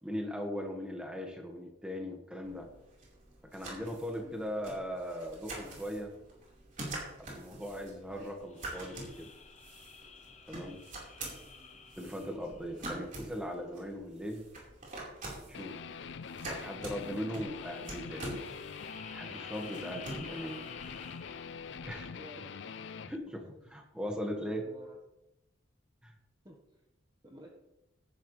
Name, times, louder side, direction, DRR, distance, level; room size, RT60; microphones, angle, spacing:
voice 1, 0.0-2.7 3.5-6.1 7.2-9.3 10.5-10.8 12.0-14.4 15.5-15.8 16.5-18.5 19.1-20.6 21.8-22.2 23.1-23.4 23.7-24.7 26.0-26.1, equal, 5° right, 1 dB, 1.8 m, -39 dB
sound 1, 2.4-22.0, right 2 dB, 40° right, 4.5 m, -46 dB
voice 2, 4.2-4.5 11.4-11.8 22.1-22.5 23.7-23.8 24.4-25.0 26.4-26.6 27.2-27.5, equal, 20° right, -1 dB, 1.4 m, -53 dB
sound 2, 8.4-13.2 17.0-21.8, left 6 dB, 35° left, 1.0 m, -52 dB
Guitar, 15.5-23.2, left 6 dB, 60° left, 0.5 m, -44 dB
18.0 x 11.0 x 3.4 m, 0.91 s
head